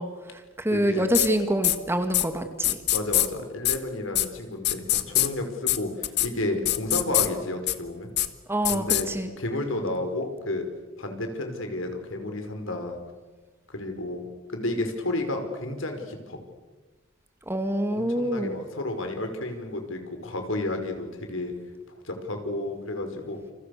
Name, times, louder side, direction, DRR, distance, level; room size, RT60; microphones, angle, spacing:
voice 1, 0.0-2.8 8.5-9.3 17.5-18.6, right 1 dB, 10° right, 7 dB, 2.1 m, -26 dB
voice 2, 0.7-1.1 2.9-8.1 8.7-9.1 9.4-10.7 11.0-13.0 13.7-16.4 17.9-21.5 21.9-23.4, left 2 dB, 70° left, 5 dB, 5.4 m, -31 dB
sound 1, 1.1-1.3 1.6-1.8 2.1-2.2 2.6-3.3 3.6-3.8 4.1-4.3 4.6-5.3 5.7-5.8 6.0-6.3 6.7-7.3 7.7-7.8 8.2-8.3 8.6-9.0, left 14 dB, 55° left, 1.7 m, -22 dB
30.0 x 29.5 x 6.7 m, 1.2 s
head